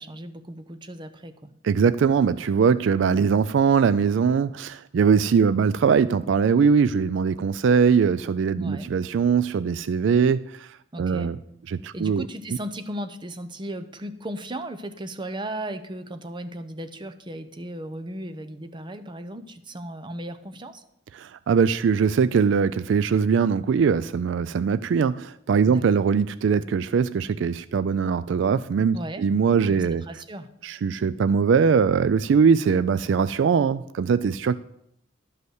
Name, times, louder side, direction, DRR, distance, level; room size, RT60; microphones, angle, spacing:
voice 1, 0.0-1.5 8.6-8.9 10.9-11.4 11.9-20.8 25.6-26.1 28.9-29.3 29.7-30.5, right 1 dB, 25° right, 10 dB, 0.7 m, -36 dB
voice 2, 1.6-10.7 11.0-11.4 11.7-12.2 21.2-30.0 30.6-34.6, right 6 dB, 70° right, 16 dB, 0.3 m, -21 dB
11.5 x 5.3 x 7.9 m, 0.77 s
head